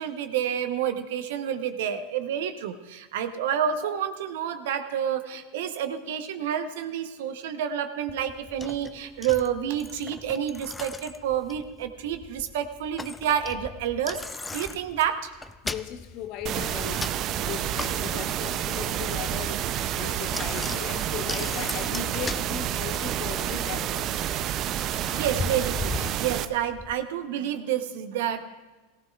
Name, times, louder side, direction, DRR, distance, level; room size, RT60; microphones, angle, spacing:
voice 1, 0.0-15.3 25.1-28.6, right 9 dB, 70° right, 9 dB, 0.9 m, -29 dB
Bicycle, 8.1-26.9, left 3 dB, 15° left, 0.5 m, -39 dB
voice 2, 15.6-24.2, left 10 dB, 55° left, 9 dB, 1.0 m, -38 dB
sound 1, 16.5-26.5, right 11 dB, 45° right, 0.5 m, -29 dB
17.5 x 15.5 x 2.4 m, 1.3 s
hypercardioid pair, 95°, 0 cm